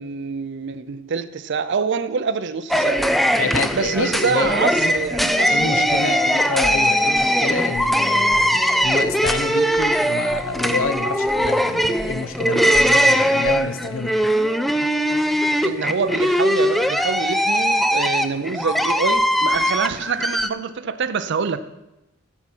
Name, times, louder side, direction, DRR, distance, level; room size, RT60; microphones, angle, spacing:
voice 1, 0.0-3.2 3.7-6.1 15.6-21.6, right 5 dB, 60° right, 0.5 m, -26 dB
sound 1, 2.7-20.5, equal, ahead, 0.4 m, -20 dB
voice 2, 3.4-4.9 5.5-14.2, left 4 dB, 75° left, 0.8 m, -28 dB
14.5 x 5.7 x 6.1 m
head